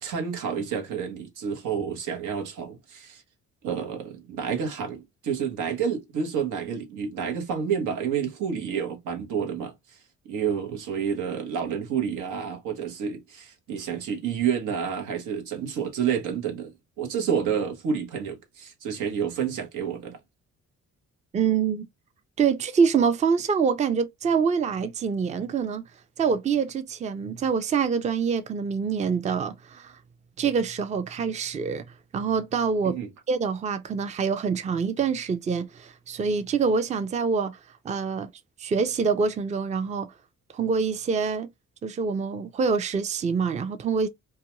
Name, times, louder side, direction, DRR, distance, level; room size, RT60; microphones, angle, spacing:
voice 1, 0.0-3.2 3.6-10.0 10.2-16.7 17.0-20.2 32.8-33.1, right 7 dB, 90° right, 0.9 m, -29 dB
voice 2, 21.3-21.9 22.4-25.8 26.2-30.0 30.4-31.8 32.1-33.0 33.3-37.6 37.8-38.3 38.6-40.1 40.5-41.5 41.8-44.1, right 5 dB, 25° right, 0.4 m, -25 dB
2.4 x 2.2 x 2.9 m
cardioid pair, 90°, 30 cm